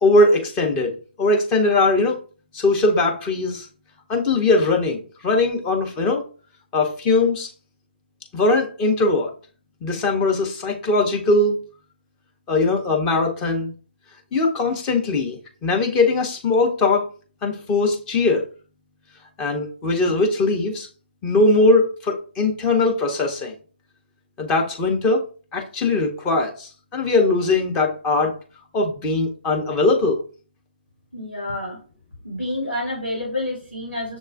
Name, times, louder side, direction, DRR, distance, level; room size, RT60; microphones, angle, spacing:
voice 1, 0.0-2.2 2.5-3.7 4.1-6.2 6.7-7.5 8.3-9.3 9.8-11.6 12.5-13.7 14.3-17.1 17.4-18.4 19.4-20.9 21.2-23.5 24.4-25.2 25.5-28.3 28.7-30.2, left 2 dB, 15° left, 2 dB, 0.6 m, -20 dB
voice 2, 31.1-31.8 32.2-34.2, left 1 dB, 90° left, -4 dB, 2.1 m, -28 dB
6.8 x 2.3 x 2.3 m, 0.38 s
figure-of-eight pair, 140°, 6 cm